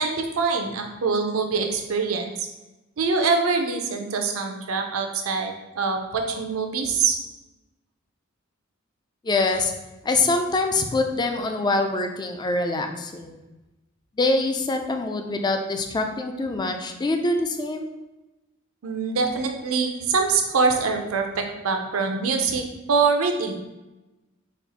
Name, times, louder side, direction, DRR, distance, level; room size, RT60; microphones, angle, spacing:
voice 1, 0.0-2.5 3.0-7.2 18.8-23.5, right 4 dB, 85° right, 4 dB, 0.6 m, -24 dB
voice 2, 9.2-9.7 10.0-13.4 14.2-17.9, left 2 dB, 20° left, 5 dB, 0.4 m, -24 dB
4.2 x 2.4 x 4.0 m, 1.0 s
head